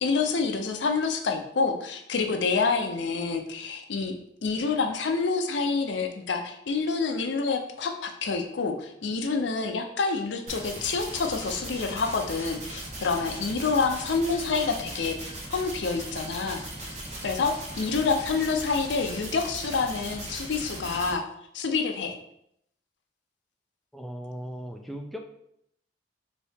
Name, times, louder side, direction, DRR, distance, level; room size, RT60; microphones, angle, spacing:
voice 1, 0.0-4.2 4.4-16.6 17.2-21.2 21.5-22.2, left 4 dB, 70° left, 5 dB, 0.5 m, -27 dB
sound 1, 10.5-21.1, right 1 dB, 35° right, 0.8 m, -38 dB
voice 2, 23.9-25.2, equal, ahead, 2 dB, 0.3 m, -37 dB
4.1 x 2.7 x 3.5 m, 0.73 s
head